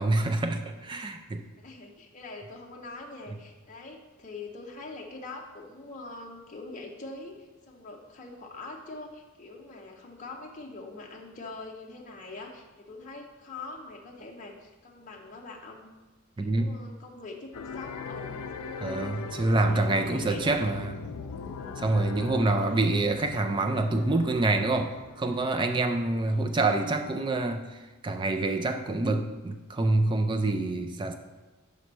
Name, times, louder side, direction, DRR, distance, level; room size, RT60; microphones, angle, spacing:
voice 1, 0.0-1.4 16.4-16.7 18.8-20.9 21.8-31.1, right 2 dB, 20° right, 6 dB, 0.4 m, -26 dB
voice 2, 1.6-15.9 16.4-19.2 19.7-20.5 22.3-22.9 26.3-26.5, left 3 dB, 35° left, 0 dB, 0.6 m, -43 dB
sound 1, 17.5-27.2, left 5 dB, 90° left, 0.5 m, -41 dB
5.4 x 5.1 x 4.6 m, 1.2 s
head